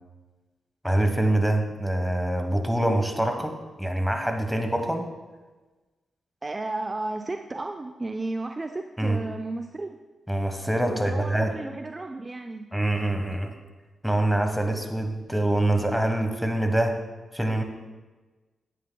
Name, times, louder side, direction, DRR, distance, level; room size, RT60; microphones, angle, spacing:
voice 1, 0.8-5.1 9.0-9.2 10.3-11.5 12.7-13.5 14.0-17.0 17.3-17.6, right 1 dB, ahead, 5 dB, 1.2 m, -25 dB
voice 2, 6.4-10.0 10.9-12.7, right 2 dB, 35° right, 5 dB, 0.4 m, -33 dB
9.8 x 8.6 x 2.2 m, 1.2 s
supercardioid pair, 45°, 0 cm